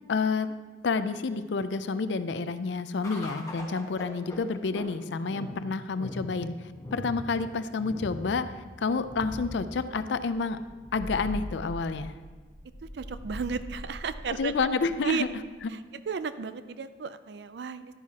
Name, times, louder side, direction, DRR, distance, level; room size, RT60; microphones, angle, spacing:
voice 1, 0.1-0.5 0.8-6.5 6.9-8.5 8.8-10.6 10.9-12.1 14.4-15.3, left 4 dB, 70° left, 11 dB, 0.4 m, -29 dB
sound 1, 3.0-15.6, equal, 15° left, 1.2 m, -41 dB
voice 2, 12.8-14.5 15.0-15.2 15.7-17.9, right 5 dB, 60° right, 13 dB, 0.4 m, -33 dB
11.0 x 9.3 x 2.9 m, 1.4 s
head